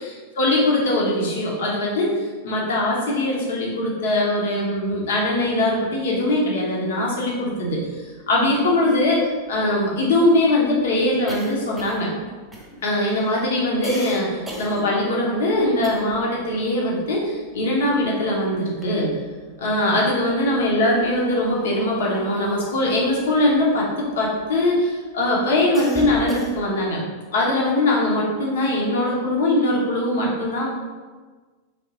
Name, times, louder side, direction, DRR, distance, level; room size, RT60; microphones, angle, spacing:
voice 1, 0.0-2.1 2.4-12.1 12.8-19.1 19.6-27.0 27.3-30.7, left 1 dB, 60° left, -3 dB, 1.1 m, -21 dB
sound 1, 8.2-8.3 8.5-8.6 8.9-16.4 16.7-18.2 18.6-19.5 20.3-24.7 25.2-26.9, equal, 5° right, 1.2 m, -39 dB
3.7 x 3.5 x 4.0 m, 1.4 s
figure-of-eight pair, 90°, 0 cm